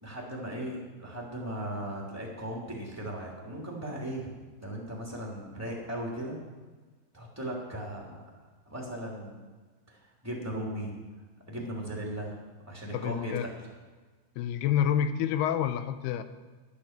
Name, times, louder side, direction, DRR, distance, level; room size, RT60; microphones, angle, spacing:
voice 1, 0.0-4.3 4.6-6.4 7.1-8.3 8.7-9.4 9.9-11.0 11.5-12.4 12.7-13.6, right 1 dB, 5° right, -3 dB, 2.5 m, -37 dB
voice 2, 12.9-13.5 14.4-16.2, left 9 dB, 90° left, 10 dB, 2.8 m, -28 dB
11.5 x 10.5 x 7.5 m, 1.4 s
omnidirectional pair, 4.5 m